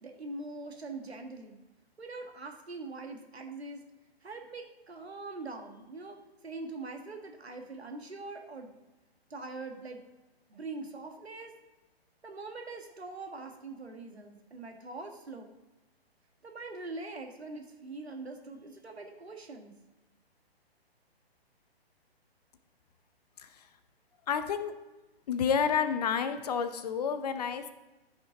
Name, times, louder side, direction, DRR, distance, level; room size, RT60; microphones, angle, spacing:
voice 1, 0.0-1.6 2.0-3.8 4.2-6.2 6.4-8.7 9.3-10.0 10.5-11.5 12.2-15.5 16.4-19.7, right 3 dB, 80° right, 4 dB, 1.5 m, -43 dB
voice 2, 24.3-24.7 25.3-27.7, left 7 dB, 40° left, 10 dB, 0.7 m, -29 dB
13.0 x 5.4 x 3.8 m, 1.1 s
figure-of-eight pair, 130°, 31 cm